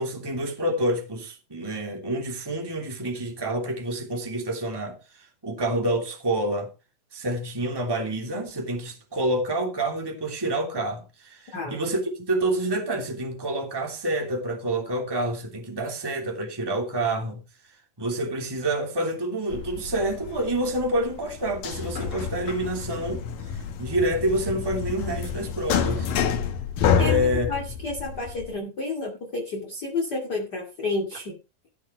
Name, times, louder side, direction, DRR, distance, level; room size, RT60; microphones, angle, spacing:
voice 1, 0.0-6.7 7.1-17.4 18.0-23.2 23.5-26.1 26.9-27.5, right 1 dB, 5° right, 2.8 m, -28 dB
sound 1, 19.5-28.5, left 7 dB, 85° left, 3.1 m, -28 dB
voice 2, 27.5-31.4, left 3 dB, 30° left, 2.7 m, -30 dB
17.0 x 6.4 x 4.8 m
omnidirectional pair, 3.8 m